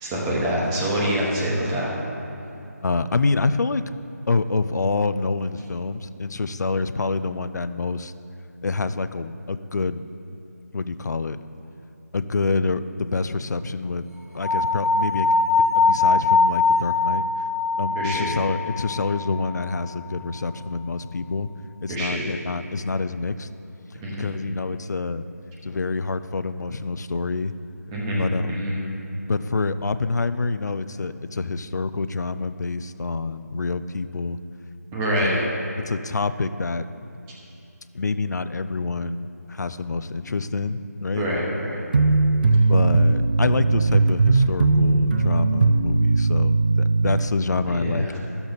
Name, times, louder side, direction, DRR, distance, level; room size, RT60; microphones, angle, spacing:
voice 1, 0.0-1.9 18.0-18.3 21.9-22.3 24.0-24.3 27.9-28.8 34.9-35.4 41.1-41.8 47.8-48.1, equal, 10° right, -5 dB, 0.9 m, -25 dB
voice 2, 2.8-3.8 4.3-8.1 8.6-10.0 10.7-11.4 12.1-14.0 14.3-17.2 17.8-21.5 21.8-23.5 23.9-25.3 25.6-27.5 28.2-28.8 29.3-34.4 35.2-35.4 35.9-36.9 37.9-41.3 42.5-48.2, left 3 dB, 80° left, 13 dB, 0.4 m, -27 dB
sound 1, 14.4-19.5, left 4 dB, 65° left, 1.6 m, -22 dB
sound 2, 41.9-47.3, right 3 dB, 30° right, 0.4 m, -19 dB
12.0 x 7.0 x 4.0 m, 2.7 s
figure-of-eight pair, 170°, 9 cm